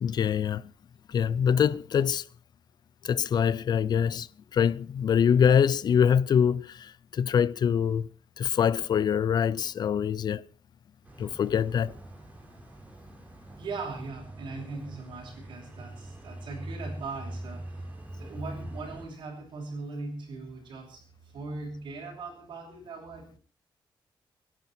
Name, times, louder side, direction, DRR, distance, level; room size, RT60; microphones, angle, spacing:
voice 1, 0.0-0.6 1.1-2.2 3.0-4.3 4.5-8.1 8.4-10.4 11.2-11.9, left 8 dB, 55° left, 0.7 m, -24 dB
sound 1, 11.0-19.0, right 1 dB, 20° right, 5.0 m, -43 dB
voice 2, 13.6-17.9 18.2-23.4, right 3 dB, 70° right, 6.4 m, -40 dB
25.0 x 11.0 x 4.5 m
cardioid pair, 125°, 8 cm